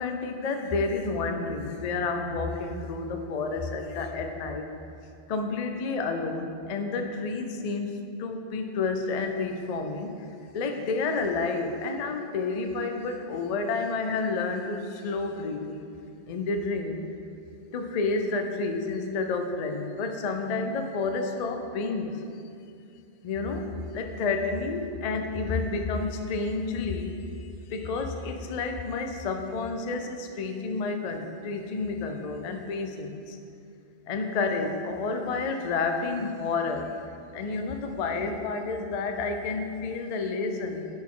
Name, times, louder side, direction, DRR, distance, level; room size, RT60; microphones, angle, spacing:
voice 1, 0.0-4.7 5.3-7.9 8.2-10.1 10.5-15.9 16.3-17.1 17.7-22.2 23.2-27.3 27.7-33.4 34.1-36.9 37.3-40.9, left 3 dB, 50° left, 5 dB, 0.5 m, -30 dB
10.5 x 4.3 x 3.7 m, 2.5 s
omnidirectional pair, 1.1 m